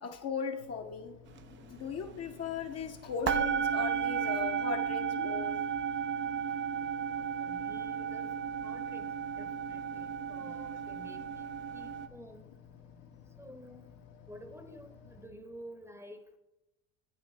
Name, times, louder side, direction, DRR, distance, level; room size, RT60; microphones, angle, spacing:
voice 1, 0.0-1.2 1.7-5.6, left 6 dB, 30° left, 5 dB, 0.7 m, -38 dB
sound 1, 0.6-15.3, left 8 dB, 85° left, 1.4 m, -55 dB
sound 2, 1.4-1.5 1.8-2.9 3.2-12.1, right 7 dB, 25° right, 0.4 m, -34 dB
voice 2, 7.1-11.5 11.7-12.5 13.4-13.9 14.3-16.4, equal, 5° right, 7 dB, 0.8 m, -51 dB
9.4 x 9.2 x 3.2 m, 0.97 s
hypercardioid pair, 90°, 48 cm